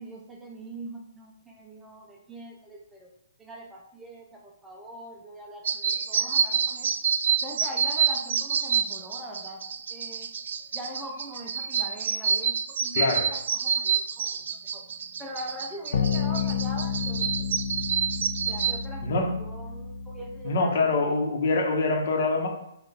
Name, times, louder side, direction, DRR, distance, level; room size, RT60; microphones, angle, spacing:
voice 1, 0.0-3.1 3.4-6.9 7.4-9.6 9.9-10.3 10.7-13.0 13.3-14.4 14.7-14.9 15.2-17.5 18.5-21.2, right 1 dB, 5° right, -1 dB, 0.5 m, -42 dB
sound 1, 5.7-18.8, right 7 dB, 65° right, 0.3 m, -27 dB
voice 2, 12.9-13.3 19.0-19.3 20.4-22.5, left 3 dB, 50° left, 1 dB, 1.1 m, -24 dB
sound 2, 15.9-20.7, left 6 dB, 70° left, 0.6 m, -31 dB
4.5 x 2.4 x 3.3 m, 0.77 s
hypercardioid pair, 150°, 0 cm